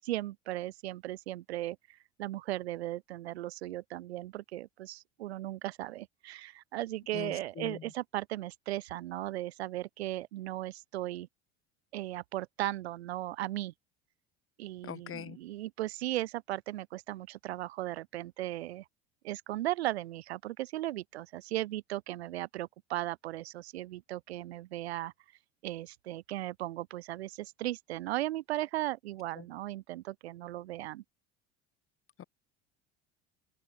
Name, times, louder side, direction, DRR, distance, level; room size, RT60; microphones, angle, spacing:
voice 1, 0.0-1.8 2.2-11.3 11.9-13.7 14.6-18.8 19.2-25.1 25.6-31.0, right 15 dB, 85° right, 6.3 m, -37 dB
voice 2, 7.1-7.9 14.8-15.4 29.3-29.5 32.2-32.3, left 10 dB, 45° left, 5.0 m, -42 dB
open air
hypercardioid pair, 80°, 31 cm